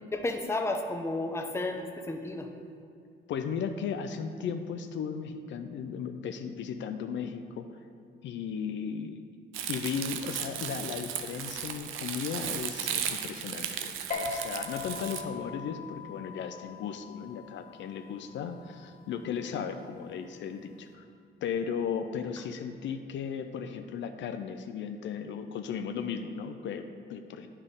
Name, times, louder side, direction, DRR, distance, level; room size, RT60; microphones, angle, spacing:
voice 1, 0.1-2.5, left 2 dB, 15° left, 4 dB, 0.7 m, -32 dB
voice 2, 3.3-7.7 8.2-9.2 9.7-21.0 21.4-27.5, left 7 dB, 70° left, 7 dB, 0.5 m, -36 dB
Crumpling crinkling, 9.5-15.2, right 9 dB, 85° right, 0.5 m, -36 dB
sound 1, 14.1-20.9, left 4 dB, 40° left, 1.3 m, -42 dB
8.9 x 5.5 x 3.6 m, 2.3 s
cardioid pair, 90°, 20 cm